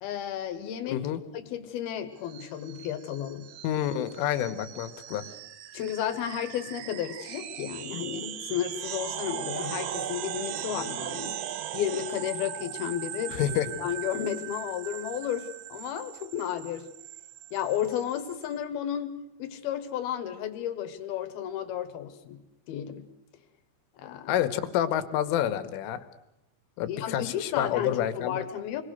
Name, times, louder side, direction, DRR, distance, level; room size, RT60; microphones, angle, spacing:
voice 1, 0.0-1.0 1.3-3.5 5.7-11.4 11.7-16.9 17.5-22.4 22.7-23.0 24.0-24.3 26.9-28.8, left 10 dB, 65° left, 9 dB, 2.8 m, -33 dB
voice 2, 0.9-1.2 3.6-5.2 13.3-13.7 24.3-26.1 26.8-28.4, left 11 dB, 85° left, 10 dB, 3.8 m, -28 dB
sound 1, 2.3-18.5, right 11 dB, 80° right, 3.6 m, -39 dB
27.5 x 21.0 x 6.6 m, 0.89 s
omnidirectional pair, 5.6 m